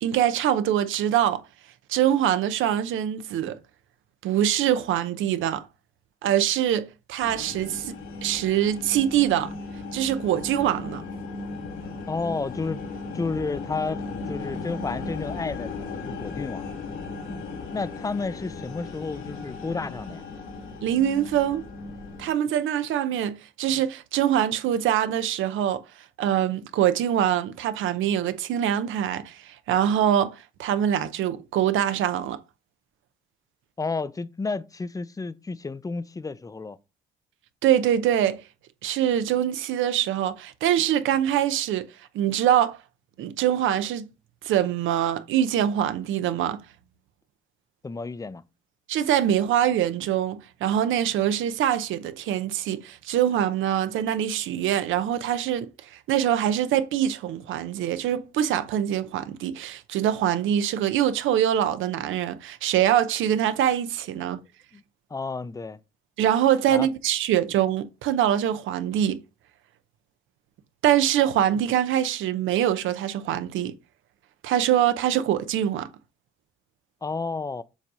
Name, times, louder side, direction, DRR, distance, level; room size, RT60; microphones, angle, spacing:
voice 1, 0.0-1.4 1.9-3.6 4.2-5.7 6.2-7.9 8.2-9.5 9.9-11.0 20.8-21.6 22.2-25.8 26.2-32.4 37.6-38.4 38.8-41.9 42.1-42.8 43.2-44.1 44.4-46.6 48.9-64.4 66.2-69.2 70.8-73.8 74.4-75.9, right 10 dB, 80° right, 0.7 m, -24 dB
sound 1, 7.2-22.3, left 3 dB, 85° left, 1.7 m, -36 dB
voice 2, 12.1-12.8 13.1-16.7 17.3-17.4 17.7-20.2 33.8-36.8 47.8-48.4 64.7-64.8 65.1-65.8 66.7-66.9 77.0-77.6, left 4 dB, 15° left, 0.5 m, -31 dB
7.3 x 2.7 x 4.8 m
cardioid pair, 90°, 20 cm